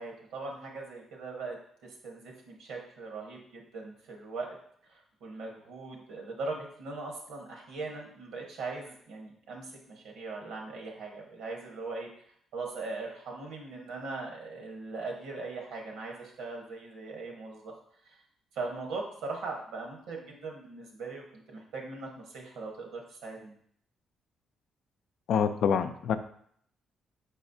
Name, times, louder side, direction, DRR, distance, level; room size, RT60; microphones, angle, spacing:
voice 1, 0.0-4.6 4.9-12.1 12.5-17.7 18.0-18.2 18.5-23.5, right 3 dB, 90° right, 0 dB, 1.1 m, -40 dB
voice 2, 25.3-26.2, left 7 dB, 75° left, 10 dB, 0.4 m, -26 dB
4.8 x 4.1 x 2.6 m, 0.65 s
cardioid pair, 90°, 0 cm